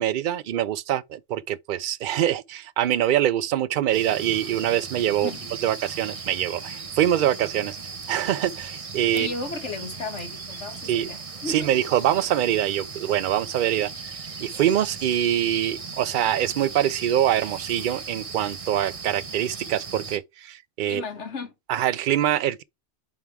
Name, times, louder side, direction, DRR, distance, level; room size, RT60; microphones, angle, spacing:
voice 1, 0.0-5.3 5.6-7.8 8.1-9.3 10.8-11.1 11.5-13.9 14.4-21.0 21.7-22.6, right 11 dB, 60° right, 0.6 m, -24 dB
sound 1, 3.9-20.2, right 4 dB, 35° right, 0.8 m, -37 dB
voice 2, 9.1-11.7 20.8-21.5, left 3 dB, 85° left, 1.7 m, -34 dB
7.4 x 3.4 x 4.6 m
omnidirectional pair, 1.2 m